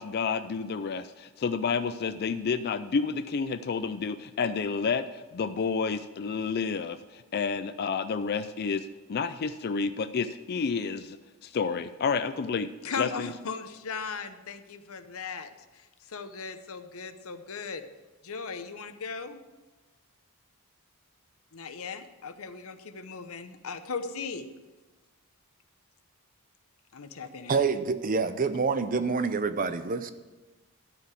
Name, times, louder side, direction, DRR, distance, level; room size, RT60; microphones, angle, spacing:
voice 1, 0.0-11.2 11.4-12.7 13.0-13.3, left 5 dB, 45° left, 11 dB, 0.4 m, -30 dB
voice 2, 12.8-17.8 18.2-19.4 21.5-24.5 26.9-27.6, left 5 dB, 70° left, 9 dB, 0.8 m, -38 dB
voice 3, 27.5-30.1, right 4 dB, 40° right, 11 dB, 0.6 m, -27 dB
13.0 x 4.8 x 8.3 m, 1.2 s
head